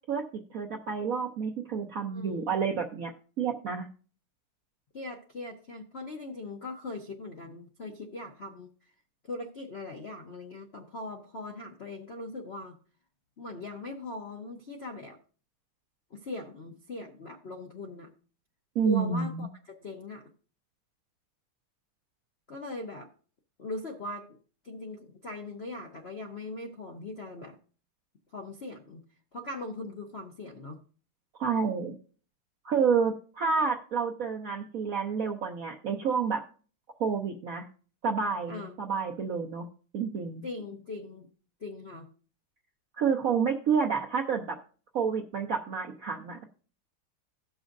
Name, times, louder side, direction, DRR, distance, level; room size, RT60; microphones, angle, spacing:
voice 1, 0.5-3.1 3.4-3.9 18.7-19.5 31.4-32.0 32.6-36.4 37.0-37.6 38.0-39.7 39.9-40.4 43.0-44.6 44.9-46.4, right 6 dB, 65° right, 1 dB, 0.8 m, -29 dB
voice 2, 2.1-2.6 4.9-8.7 9.2-12.8 13.4-15.2 16.1-18.1 18.8-20.2 22.5-23.1 23.6-24.3 24.6-27.6 28.3-29.0 29.3-30.8 38.5-38.9 40.4-41.3 41.6-42.1, left 2 dB, 60° left, 2 dB, 0.6 m, -40 dB
17.0 x 6.2 x 2.5 m, 0.40 s
omnidirectional pair, 2.3 m